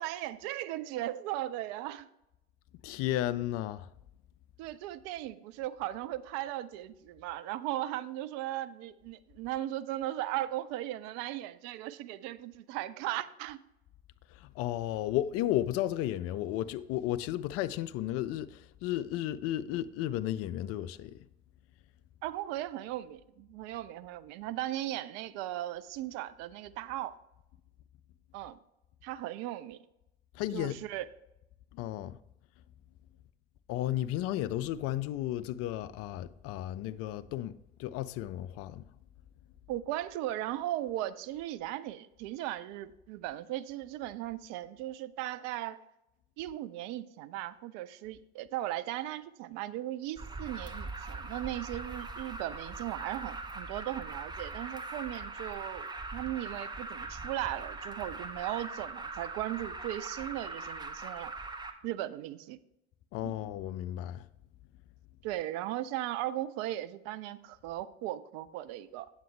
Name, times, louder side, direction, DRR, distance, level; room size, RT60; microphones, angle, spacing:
voice 1, 0.0-2.1 4.6-13.6 22.2-27.2 28.3-28.6 29.0-29.8 30.5-31.1 39.7-45.8 46.4-61.3 61.8-62.6 63.2-63.4 65.2-69.1, right 14 dB, 55° right, 0.5 m, -37 dB
voice 2, 2.8-3.9 14.3-21.2 30.3-30.8 31.7-32.2 33.7-37.5 37.8-38.9 63.1-64.2, left 13 dB, 45° left, 0.4 m, -33 dB
Alarm, 50.2-61.7, right 3 dB, 15° right, 0.8 m, -41 dB
9.0 x 8.0 x 3.2 m
figure-of-eight pair, 60°, 32 cm